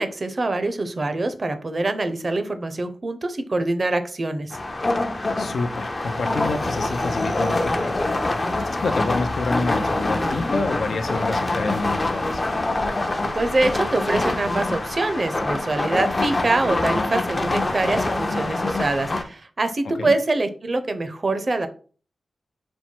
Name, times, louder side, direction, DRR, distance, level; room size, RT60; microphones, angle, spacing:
voice 1, 0.0-4.6 13.3-21.7, right 2 dB, 45° right, 9 dB, 0.6 m, -24 dB
sound 1, 4.5-19.2, left 2 dB, 35° left, 0.5 m, -25 dB
voice 2, 5.4-8.2 8.5-12.4 20.0-20.1, left 3 dB, 75° left, 7 dB, 0.5 m, -28 dB
4.4 x 2.1 x 4.4 m, 0.40 s
cardioid pair, 70°, 0 cm